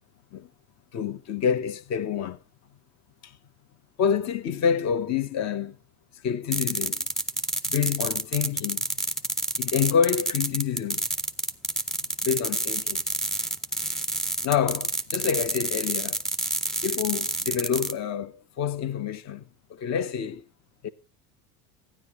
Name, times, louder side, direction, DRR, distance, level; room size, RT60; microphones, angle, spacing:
voice 1, 0.9-2.4 3.2-3.3 4.0-5.8 6.2-7.0 7.7-8.9 9.6-11.0 12.2-13.0 14.4-16.2 16.8-19.4 19.7-20.4 20.8-20.9, left 7 dB, 35° left, 0.9 m, -27 dB
sound 1, 6.5-17.9, right 2 dB, ahead, 0.5 m, -28 dB
12.5 x 10.0 x 3.1 m
supercardioid pair, 100°, 46 cm